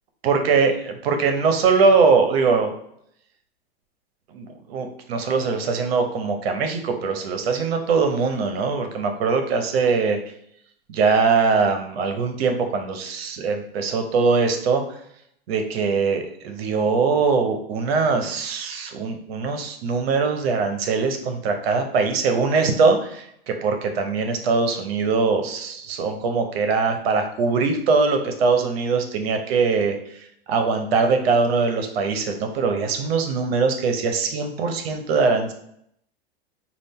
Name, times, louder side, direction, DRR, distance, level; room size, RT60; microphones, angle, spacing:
voice 1, 0.2-2.7 4.3-10.2 10.9-14.8 15.5-35.5, right 4 dB, 75° right, 5 dB, 0.9 m, -22 dB
5.3 x 2.5 x 3.6 m, 0.72 s
supercardioid pair, 150°, 31 cm